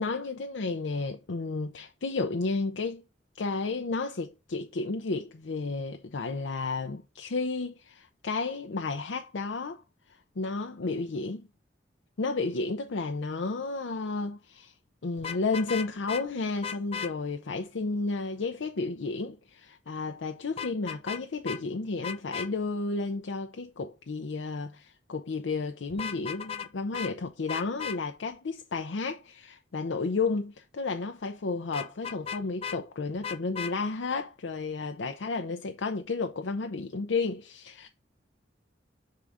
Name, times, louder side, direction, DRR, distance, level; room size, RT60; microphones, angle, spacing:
voice 1, 0.0-3.0 3.4-9.8 10.1-11.5 12.2-14.7 15.0-37.9, left 3 dB, 85° left, 0.6 m, -32 dB
Vehicle horn car horn honking, 15.2-16.2 16.6-17.1 20.6-21.2 21.5-21.6 22.0-22.5 25.9-26.7 26.9-27.1 27.5-28.0 31.7-32.8 33.2-33.7, left 7 dB, 30° left, 0.4 m, -35 dB
7.0 x 3.8 x 4.8 m
head